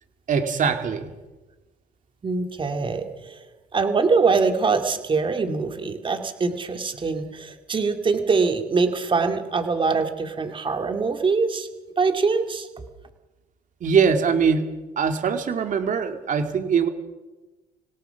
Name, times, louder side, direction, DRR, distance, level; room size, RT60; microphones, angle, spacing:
voice 1, 0.3-1.1 13.8-14.7 15.0-16.9, right 6 dB, 50° right, 6 dB, 2.5 m, -22 dB
voice 2, 2.2-3.4 3.7-11.7 12.0-12.7, right 4 dB, 30° right, 6 dB, 2.4 m, -23 dB
25.5 x 18.0 x 5.9 m, 1.1 s
cardioid pair, 110°, 17 cm